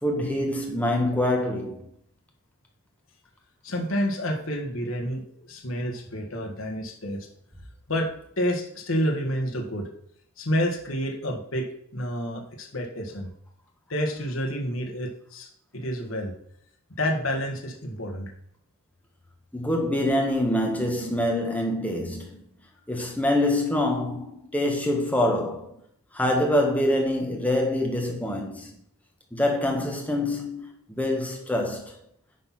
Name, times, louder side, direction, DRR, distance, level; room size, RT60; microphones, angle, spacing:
voice 1, 0.0-1.8 19.5-22.4 22.9-25.8 26.1-28.7 29.3-32.0, left 1 dB, 5° left, 1.7 m, -25 dB
voice 2, 3.6-7.3 7.9-8.1 8.4-9.9 10.4-11.7 11.9-13.3 13.9-15.5 15.7-16.3 17.0-18.3, equal, 70° left, 1.7 m, -29 dB
10.0 x 4.3 x 5.9 m
head